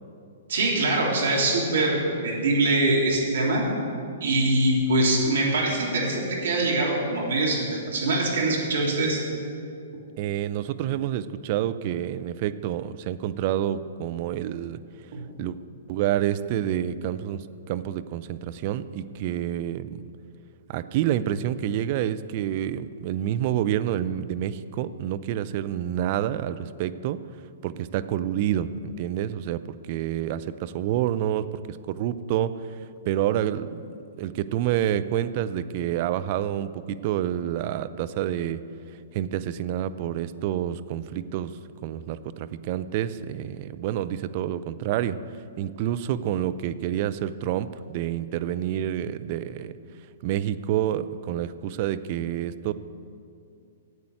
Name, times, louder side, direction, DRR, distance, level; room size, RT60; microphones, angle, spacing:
voice 1, 0.5-3.6 4.2-9.2, right 2 dB, 65° right, -2 dB, 3.4 m, -23 dB
voice 2, 10.2-14.8 15.4-15.6 15.9-20.1 20.7-27.2 27.6-32.5 33.1-33.8 34.2-38.6 39.1-45.2 45.6-49.8 50.2-52.7, right 11 dB, 45° right, 12 dB, 0.5 m, -28 dB
11.0 x 8.3 x 7.8 m, 2.5 s
figure-of-eight pair, 115°, 0 cm